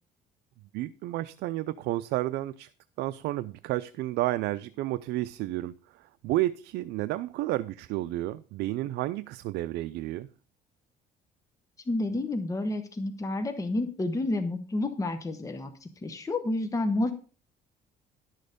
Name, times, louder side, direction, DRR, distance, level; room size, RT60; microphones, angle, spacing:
voice 1, 0.7-2.7 3.0-10.3, right 16 dB, 80° right, 0.5 m, -31 dB
voice 2, 11.9-17.1, left 2 dB, 20° left, 1.0 m, -30 dB
11.5 x 6.5 x 5.1 m
cardioid pair, 110°, 17 cm